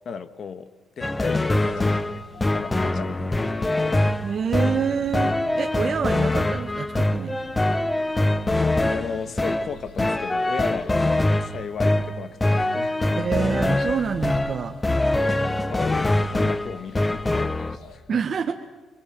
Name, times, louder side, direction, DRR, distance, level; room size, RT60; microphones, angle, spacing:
voice 1, 0.1-0.7 1.0-2.2 2.5-3.5 8.9-11.0 11.4-13.1 15.4-18.2, left 6 dB, 55° left, 11 dB, 1.7 m, -35 dB
sound 1, 1.0-17.8, left 2 dB, 20° left, 1.1 m, -23 dB
sound 2, 1.3-18.0, left 1 dB, 90° left, 4.2 m, -46 dB
voice 2, 4.2-7.4 13.2-14.8 18.1-18.5, right 6 dB, 50° right, 4 dB, 1.7 m, -27 dB
27.0 x 23.5 x 7.9 m, 1.2 s
cardioid pair, 90°, 0 cm